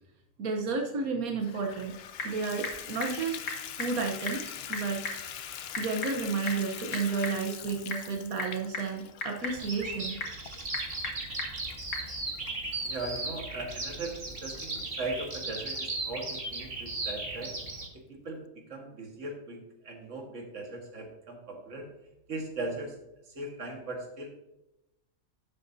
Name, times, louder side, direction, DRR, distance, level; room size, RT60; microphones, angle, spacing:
voice 1, 0.4-1.9 2.2-3.4 3.8-5.0 5.8-10.2, right 4 dB, 90° right, 2 dB, 1.5 m, -32 dB
Water tap faucet / Bathtub (filling or washing), 1.4-15.8 16.4-16.5 17.0-17.1 17.3-17.4, left 9 dB, 60° left, 0.7 m, -44 dB
Typing / Telephone, 1.6-12.1, left 3 dB, 85° left, 2.2 m, -40 dB
Bird vocalization bird call bird song, 9.5-17.9, right 2 dB, 40° right, 2.0 m, -36 dB
voice 2, 12.8-17.6 18.1-21.9 22.3-23.0 23.3-24.3, right 2 dB, 60° right, 2 dB, 2.0 m, -39 dB
12.0 x 7.5 x 2.7 m, 0.91 s
omnidirectional pair, 1.5 m